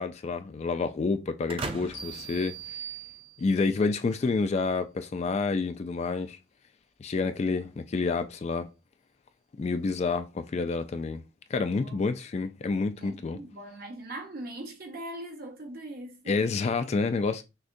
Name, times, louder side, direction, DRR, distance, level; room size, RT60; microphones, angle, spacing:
voice 1, 0.0-2.6 3.4-6.4 7.0-8.7 9.6-11.2 11.5-13.4 16.3-17.4, left 4 dB, 35° left, 0.3 m, -28 dB
sound 1, 1.5-3.4, right 3 dB, 30° right, 0.5 m, -39 dB
sound 2, 1.9-3.8, right 8 dB, 75° left, 1.3 m, -42 dB
voice 2, 11.7-12.0 12.9-16.5, right 1 dB, 55° right, 1.0 m, -41 dB
6.1 x 2.2 x 2.6 m
head